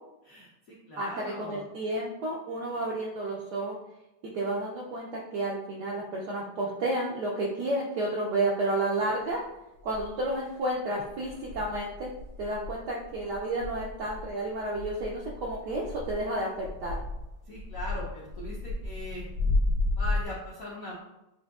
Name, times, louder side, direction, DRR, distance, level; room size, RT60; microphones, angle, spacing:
voice 1, 0.2-1.6 17.4-19.3 20.0-20.9, left 1 dB, 70° left, -4 dB, 0.8 m, -40 dB
voice 2, 1.0-3.8 4.3-9.4 9.8-12.1 12.4-17.0, right 1 dB, 75° right, -2 dB, 0.9 m, -31 dB
sound 1, 9.3-9.4 9.9-10.5 11.0-20.2, left 2 dB, 20° right, 0.5 m, -33 dB
7.4 x 2.6 x 2.4 m, 0.96 s
omnidirectional pair, 2.4 m